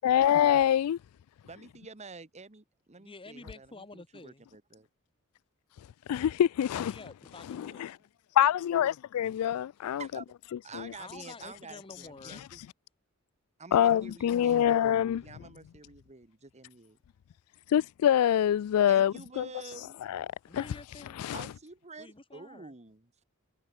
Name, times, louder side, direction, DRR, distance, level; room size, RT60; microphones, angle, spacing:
voice 1, 0.0-1.0 6.1-6.9 7.5-7.9 8.4-10.1 10.7-10.9 13.7-15.2 17.7-19.5 20.0-20.3 20.5-20.6 21.2-21.4, left 10 dB, 75° left, 0.3 m, -25 dB
voice 2, 1.4-4.9 10.0-10.2 10.6-12.6 13.6-14.8 15.2-17.0 18.9-20.0 21.3-23.2, right 4 dB, 30° right, 1.4 m, -48 dB
voice 3, 3.0-4.5 6.7-7.9 11.0-12.5 20.5-21.3 22.0-22.7, left 3 dB, 25° left, 1.8 m, -49 dB
head